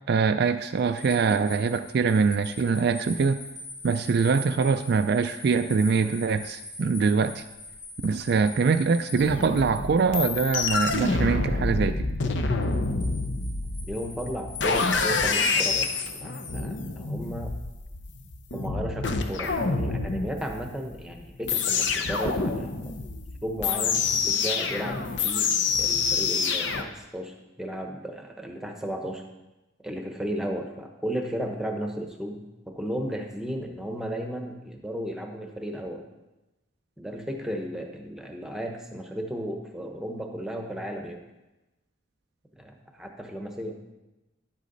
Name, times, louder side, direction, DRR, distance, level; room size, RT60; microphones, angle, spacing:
voice 1, 0.1-3.4 3.8-7.4 8.0-12.0, right 5 dB, 55° right, 9 dB, 0.3 m, -23 dB
sound 1, 0.8-10.1 12.6-16.6, left 3 dB, 30° left, 2.5 m, -43 dB
sound 2, 9.2-26.8, left 4 dB, 60° left, 0.7 m, -27 dB
voice 2, 13.8-17.5 18.5-22.8 23.4-25.5 25.8-29.2 29.8-36.0 37.0-41.2 42.6-43.8, equal, 5° right, 3 dB, 0.9 m, -34 dB
10.5 x 8.2 x 3.9 m, 1.0 s
head